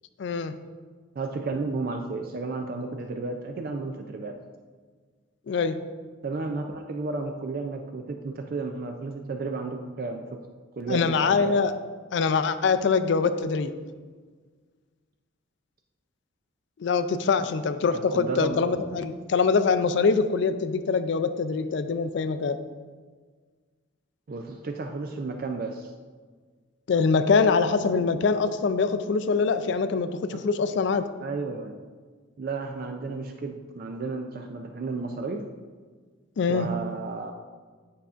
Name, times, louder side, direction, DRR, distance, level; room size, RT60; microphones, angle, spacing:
voice 1, 0.2-0.6 5.5-5.8 10.9-11.7 12.1-13.7 16.8-22.6 26.9-31.1 36.4-36.7, left 5 dB, 60° left, 10 dB, 0.3 m, -24 dB
voice 2, 1.2-4.4 6.2-10.4 10.8-11.6 17.9-18.7 24.3-25.9 31.2-31.8 32.4-35.5 36.5-37.3, right 3 dB, 45° right, 4 dB, 0.3 m, -33 dB
9.1 x 5.6 x 2.4 m, 1.5 s
head